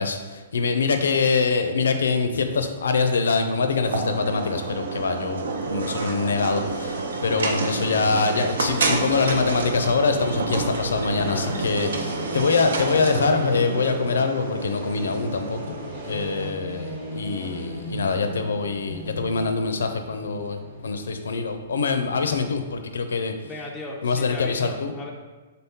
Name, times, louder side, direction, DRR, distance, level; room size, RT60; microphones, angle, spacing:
voice 1, 0.0-15.8 16.0-23.3 24.0-24.9, left 4 dB, 90° left, 7 dB, 0.4 m, -24 dB
sound 1, 3.9-16.5, right 3 dB, 75° right, 0.5 m, -29 dB
sound 2, 8.7-22.6, equal, 35° right, 1.0 m, -38 dB
voice 2, 11.1-11.6 23.4-25.1, left 2 dB, 10° left, -2 dB, 0.4 m, -36 dB
3.9 x 2.8 x 3.5 m, 1.3 s
hypercardioid pair, 155°, 0 cm